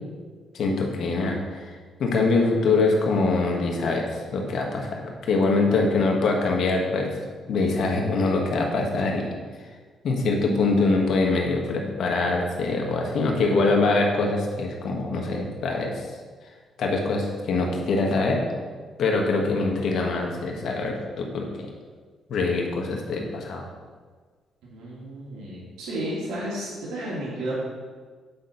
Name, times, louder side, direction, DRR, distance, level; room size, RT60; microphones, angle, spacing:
voice 1, 0.5-1.7 2.0-4.1 4.3-7.1 7.5-9.3 10.0-16.1 16.8-18.4 19.0-21.0 21.3-21.7 22.3-23.7, left 3 dB, 65° left, 1 dB, 1.5 m, -24 dB
voice 2, 24.7-27.5, right 1 dB, 85° right, -6 dB, 2.1 m, -32 dB
8.7 x 4.0 x 5.8 m, 1.5 s
cardioid pair, 90°, 0 cm